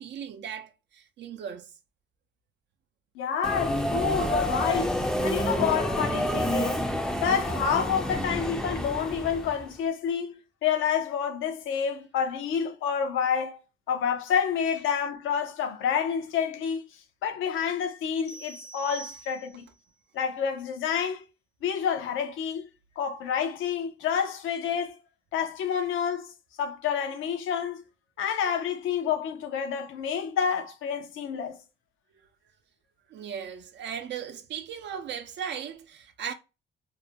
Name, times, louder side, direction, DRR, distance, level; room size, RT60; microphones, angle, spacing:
voice 1, 0.0-1.7 25.7-25.8 33.1-36.3, right 8 dB, 60° right, 0.4 m, -37 dB
voice 2, 3.2-6.8 7.2-13.6 13.9-16.9 17.2-19.6 20.1-21.2 21.6-22.7 23.0-25.0 25.3-26.3 26.6-27.8 28.2-31.6, left 7 dB, 80° left, 0.5 m, -28 dB
Subway metro underground, 3.4-9.7, equal, 5° left, 0.4 m, -28 dB
sound 1, 18.2-19.8, right 4 dB, 65° left, 0.9 m, -44 dB
2.4 x 2.1 x 2.7 m
cardioid pair, 90°, 20 cm